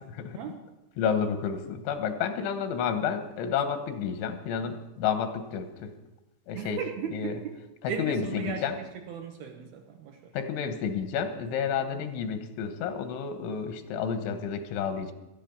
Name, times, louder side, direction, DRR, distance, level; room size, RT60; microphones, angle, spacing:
voice 1, 0.1-0.4 1.0-5.9 6.5-6.8 7.1-7.3 7.8-8.7 10.3-15.1, left 7 dB, 85° left, 8 dB, 3.5 m, -30 dB
voice 2, 6.5-7.6 7.9-10.3 11.9-12.1, right 6 dB, 75° right, 3 dB, 2.3 m, -37 dB
16.5 x 13.5 x 5.2 m, 0.99 s
omnidirectional pair, 5.4 m